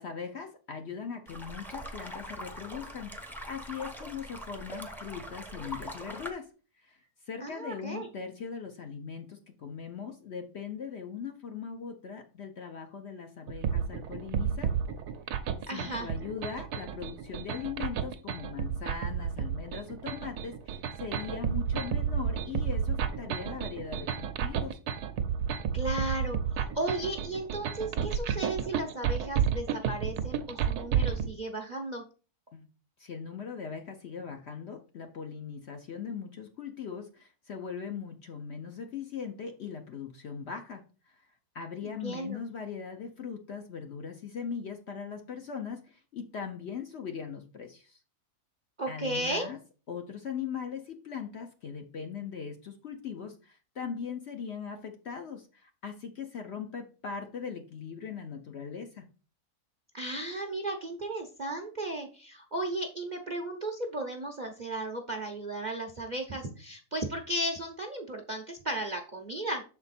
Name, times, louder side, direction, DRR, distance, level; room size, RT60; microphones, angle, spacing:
voice 1, 0.0-6.5 6.8-14.7 15.3-15.4 15.7-24.8 32.5-32.7 33.0-41.2 41.5-48.0 48.9-49.6 49.9-59.1, left 6 dB, 55° left, 5 dB, 0.8 m, -40 dB
sound 1, 1.3-6.3, equal, ahead, 0.6 m, -42 dB
voice 2, 7.4-8.1 15.7-16.1 25.7-32.0 41.8-42.4 48.8-49.5 59.9-69.6, right 1 dB, 40° right, 3 dB, 0.6 m, -35 dB
sound 2, 13.5-31.3, right 8 dB, 80° right, 1.2 m, -31 dB
6.8 x 4.4 x 4.1 m, 0.36 s
omnidirectional pair, 1.6 m